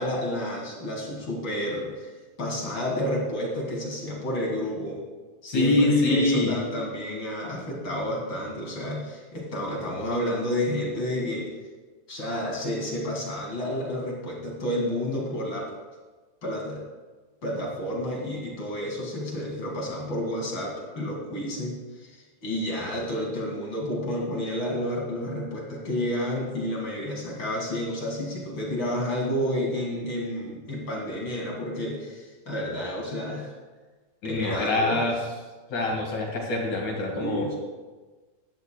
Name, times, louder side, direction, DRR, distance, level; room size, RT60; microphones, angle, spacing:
voice 1, 0.0-2.1 2.4-5.0 5.4-11.5 12.1-15.7 16.4-16.8 17.4-33.5 34.2-35.1 37.2-37.6, left 1 dB, 40° left, -2 dB, 2.6 m, -30 dB
voice 2, 5.5-6.5 34.2-35.2 35.7-37.5, left 2 dB, 65° left, -1 dB, 3.1 m, -24 dB
16.5 x 10.5 x 2.2 m, 1.3 s
omnidirectional pair, 3.7 m